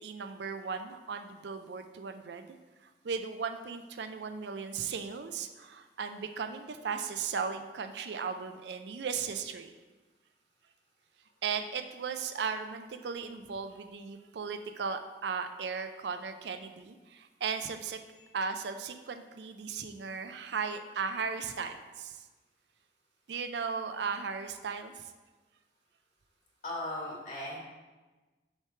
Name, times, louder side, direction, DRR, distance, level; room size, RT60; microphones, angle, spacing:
voice 1, 0.0-2.5 3.0-9.7 11.4-18.0 18.3-22.2 23.3-24.9, right 5 dB, 70° right, 7 dB, 0.4 m, -36 dB
voice 2, 26.6-27.6, left 1 dB, 40° left, -4 dB, 1.8 m, -38 dB
6.5 x 3.1 x 5.7 m, 1.2 s
head